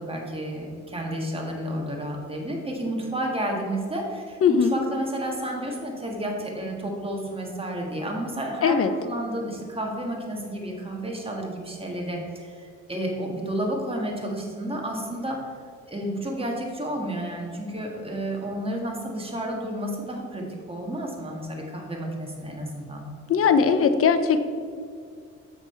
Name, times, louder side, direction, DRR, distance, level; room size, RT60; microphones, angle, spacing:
voice 1, 0.0-15.4 15.9-23.1, right 1 dB, 20° right, 0 dB, 1.7 m, -31 dB
voice 2, 4.4-4.7 8.6-8.9 23.3-24.4, left 6 dB, 50° left, 9 dB, 0.7 m, -19 dB
7.4 x 5.9 x 4.4 m, 2.1 s
cardioid pair, 90°, 30 cm